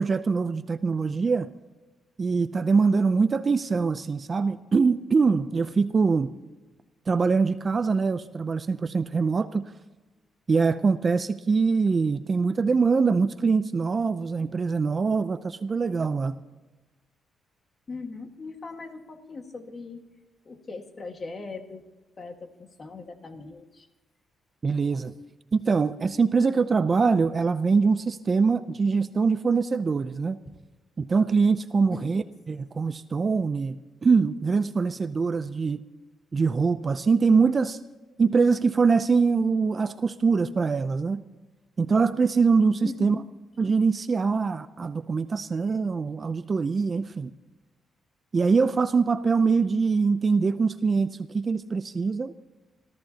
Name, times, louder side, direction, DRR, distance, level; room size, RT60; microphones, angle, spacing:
voice 1, 0.0-1.5 2.2-6.3 7.1-9.7 10.5-16.4 24.6-25.1 25.5-30.4 31.0-35.8 36.3-37.8 38.2-41.2 41.8-43.2 43.6-47.3 48.3-52.3, right 4 dB, 30° right, 11 dB, 0.5 m, -23 dB
voice 2, 17.9-20.1 20.5-21.8 22.2-23.9 31.9-32.1 42.8-43.3, left 3 dB, 30° left, 5 dB, 1.7 m, -39 dB
27.5 x 14.0 x 2.9 m, 1.2 s
cardioid pair, 145°, 0 cm